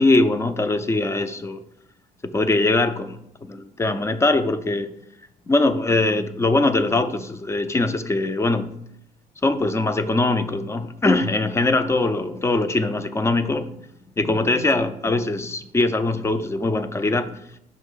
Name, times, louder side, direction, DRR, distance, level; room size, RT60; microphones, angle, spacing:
voice 1, 0.0-1.6 2.2-4.9 5.5-8.7 9.4-13.7 14.2-17.4, left 2 dB, 15° left, 0.4 m, -22 dB
6.4 x 3.0 x 5.5 m
cardioid pair, 110°, 17 cm